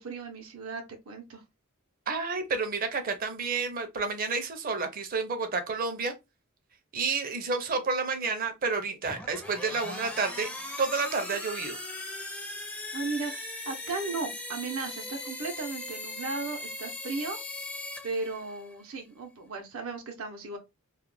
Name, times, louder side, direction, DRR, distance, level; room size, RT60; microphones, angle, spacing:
voice 1, 0.0-1.4 12.9-17.4 18.0-20.6, right 3 dB, 85° right, 0.6 m, -36 dB
voice 2, 2.1-6.1 6.9-10.5 10.8-11.8, right 4 dB, 45° right, 0.5 m, -30 dB
sound 1, 9.0-18.7, left 2 dB, 5° left, 0.4 m, -39 dB
2.4 x 2.1 x 3.0 m
head